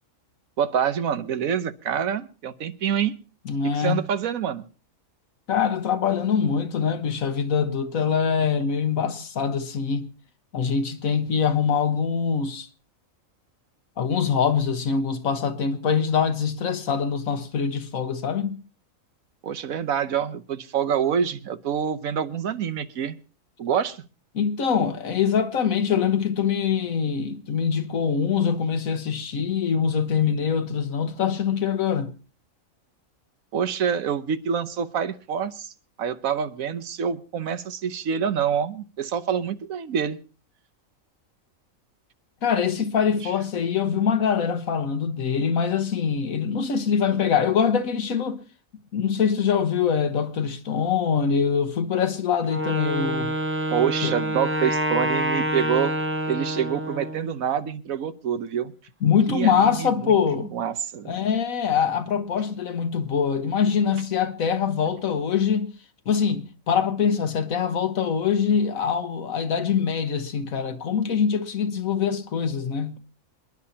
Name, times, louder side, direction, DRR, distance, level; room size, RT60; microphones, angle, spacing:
voice 1, 0.6-3.1 3.7-4.6 19.4-23.2 23.6-24.0 33.5-35.7 36.0-40.2 53.7-55.9 56.3-58.7 59.3-60.1 60.5-61.2, right 8 dB, 85° right, 1.3 m, -26 dB
voice 2, 3.4-4.1 5.5-10.1 10.5-12.7 14.0-18.6 24.3-32.1 42.4-48.4 48.9-53.3 54.0-54.1 59.0-60.5 61.1-65.7 66.1-73.0, left 7 dB, 80° left, 1.6 m, -24 dB
Wind instrument woodwind instrument, 52.4-57.3, right 1 dB, 10° right, 0.7 m, -27 dB
27.5 x 10.5 x 2.8 m
omnidirectional pair, 1.4 m